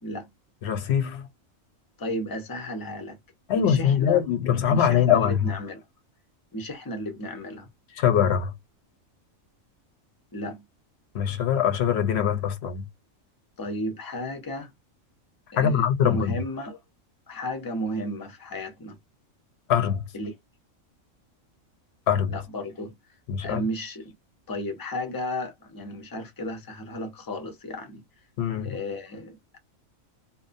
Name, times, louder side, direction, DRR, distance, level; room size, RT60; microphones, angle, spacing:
voice 1, 0.6-1.3 3.5-5.5 8.0-8.5 11.1-12.8 15.6-16.4 19.7-20.1 22.1-22.3 23.3-23.6 28.4-28.8, left 9 dB, 60° left, 0.8 m, -23 dB
voice 2, 2.0-3.2 3.5-4.2 4.7-5.8 6.5-7.7 10.3-10.6 13.6-14.7 15.5-16.8 17.3-19.0 20.1-20.3 22.3-22.9 23.4-24.1 24.5-28.0 28.6-29.6, equal, 30° left, 0.4 m, -33 dB
2.6 x 2.0 x 2.5 m
omnidirectional pair, 1.4 m